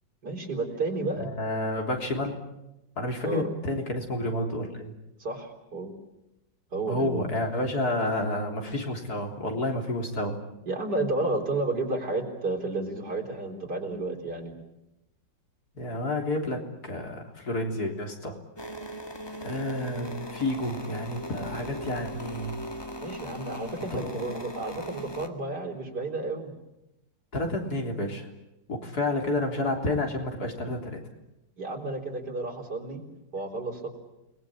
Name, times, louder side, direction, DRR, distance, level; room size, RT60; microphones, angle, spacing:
voice 1, 0.2-1.3 3.2-3.5 5.2-5.9 6.7-7.3 10.7-14.5 23.0-26.5 31.6-33.0 33.3-33.9, right 2 dB, 60° right, 3 dB, 4.5 m, -31 dB
voice 2, 1.2-2.4 3.0-4.9 6.9-10.4 15.8-18.4 19.4-22.5 23.9-24.1 27.3-28.3 28.7-31.0, left 1 dB, 55° left, 2 dB, 4.2 m, -30 dB
sound 1, 18.6-25.3, equal, 15° left, 1.8 m, -39 dB
29.5 x 20.5 x 8.7 m, 0.92 s
omnidirectional pair, 2.0 m